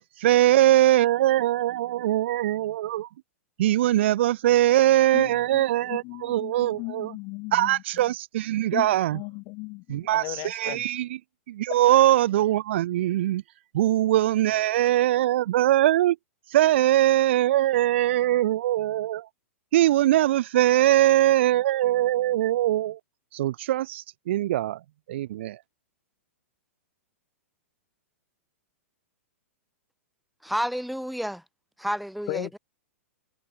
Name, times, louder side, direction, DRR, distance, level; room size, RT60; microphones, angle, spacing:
voice 1, 0.2-3.1 3.6-7.1 7.5-9.2 9.9-11.2 11.5-13.4 13.7-16.2 16.5-19.3 19.7-23.0 23.3-24.8 25.1-25.6, right 14 dB, 55° right, 0.8 m, -22 dB
voice 2, 5.9-7.8 8.7-10.9 32.3-32.5, left 28 dB, 40° left, 3.0 m, -36 dB
voice 3, 30.4-31.4 31.8-32.6, equal, ahead, 1.1 m, -30 dB
figure-of-eight pair, 105°, 8 cm